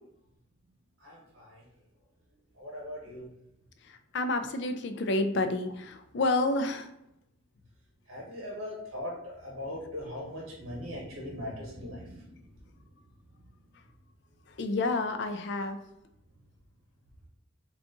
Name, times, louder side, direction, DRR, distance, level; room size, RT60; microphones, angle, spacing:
voice 1, 1.0-1.6 2.5-3.3 8.1-12.5, left 1 dB, 70° right, -3 dB, 1.0 m, -40 dB
voice 2, 3.8-6.9 14.5-15.8, left 2 dB, 55° left, 7 dB, 0.4 m, -29 dB
3.8 x 2.4 x 3.7 m, 0.81 s
head